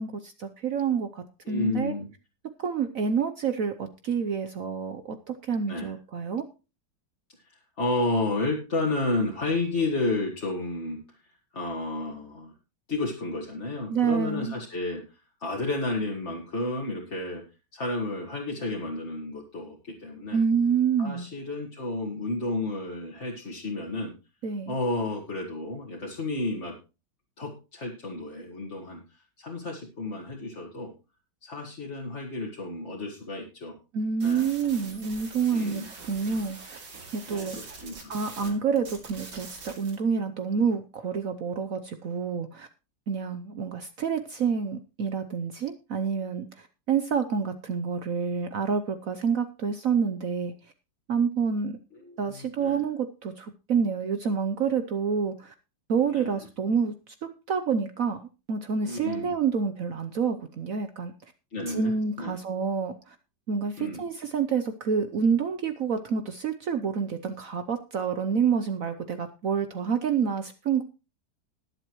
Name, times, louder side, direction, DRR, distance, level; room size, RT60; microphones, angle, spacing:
voice 1, 0.0-1.9 2.6-6.4 13.9-14.5 20.3-21.3 24.4-24.7 33.9-36.8 37.1-37.6 38.1-42.7 43.1-50.5 51.1-51.8 52.2-55.5 55.9-61.1 61.7-63.2 63.5-70.8, right 6 dB, 60° right, 9 dB, 1.1 m, -28 dB
voice 2, 1.5-2.1 5.7-5.9 7.4-11.0 11.5-12.5 12.9-17.4 17.7-20.4 21.0-24.1 24.7-26.7 27.4-30.9 31.4-33.8 34.2-34.5 35.5-35.9 37.3-38.6 51.9-52.8 56.1-56.3 58.8-59.3 61.5-62.3 63.8-64.0, left 2 dB, 40° left, -1 dB, 2.1 m, -32 dB
sound 1, 34.2-38.5 38.8-40.0, right 4 dB, 80° right, 3.1 m, -44 dB
20.0 x 7.7 x 3.1 m, 0.31 s
omnidirectional pair, 1.9 m